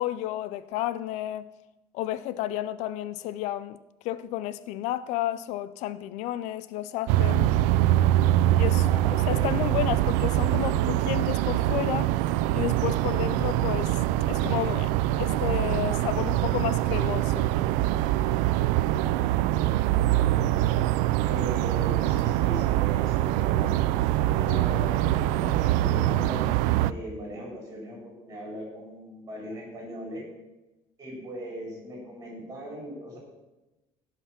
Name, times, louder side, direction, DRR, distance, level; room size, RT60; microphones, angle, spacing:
voice 1, 0.0-1.5 1.9-3.8 4.0-7.5 8.6-8.9 9.3-12.1 12.5-17.5, left 13 dB, 65° left, 0.4 m, -31 dB
sound 1, 7.1-26.9, right 14 dB, 85° right, 0.4 m, -24 dB
voice 2, 8.8-9.6 18.9-20.6 21.2-23.8 24.2-26.5 26.8-30.2 31.0-33.2, equal, 25° right, 4.4 m, -39 dB
16.0 x 5.8 x 5.8 m
cardioid pair, 170°, 13 cm